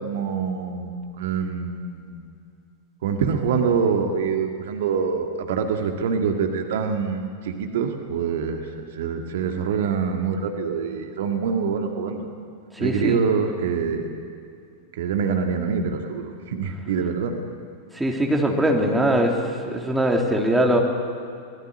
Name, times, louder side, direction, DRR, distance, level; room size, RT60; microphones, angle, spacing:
voice 1, 0.0-2.2 3.0-8.6 8.9-12.3 12.8-14.1 15.0-17.3, right 6 dB, 55° right, 4 dB, 2.1 m, -25 dB
voice 2, 12.7-13.2 17.9-19.3 19.7-20.8, right 1 dB, 5° right, 0 dB, 3.4 m, -21 dB
24.5 x 19.5 x 9.8 m, 2.4 s
figure-of-eight pair, 90°, 0 cm